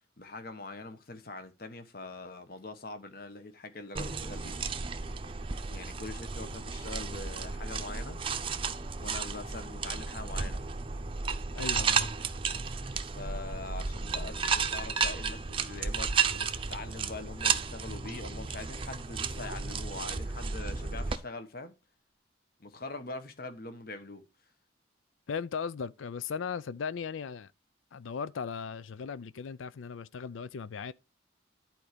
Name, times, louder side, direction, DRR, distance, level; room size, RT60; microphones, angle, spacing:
voice 1, 0.2-4.6 5.7-8.2 9.0-10.7 13.1-21.7 22.6-24.2, left 3 dB, 50° left, 1.2 m, -43 dB
sound 1, 3.9-21.2, right 5 dB, 30° right, 0.6 m, -33 dB
voice 2, 11.5-12.1 25.3-27.5 27.9-30.9, left 6 dB, 85° left, 0.4 m, -37 dB
11.0 x 4.5 x 5.1 m
head